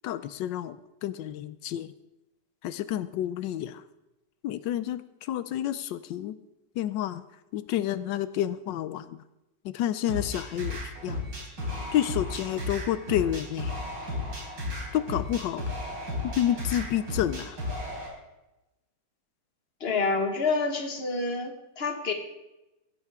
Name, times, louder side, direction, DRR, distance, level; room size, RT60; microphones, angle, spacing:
voice 1, 0.0-0.8 1.0-1.9 2.6-3.8 4.4-6.4 6.8-7.2 7.5-9.2 9.6-11.2 11.9-13.7 14.9-15.7 16.2-17.6, left 11 dB, 85° left, 13 dB, 1.3 m, -29 dB
sound 1, 10.1-18.1, left 2 dB, 85° right, 4.6 m, -34 dB
voice 2, 19.8-22.1, left 3 dB, 35° left, 5 dB, 1.7 m, -28 dB
16.0 x 14.5 x 3.6 m, 0.97 s
omnidirectional pair, 1.9 m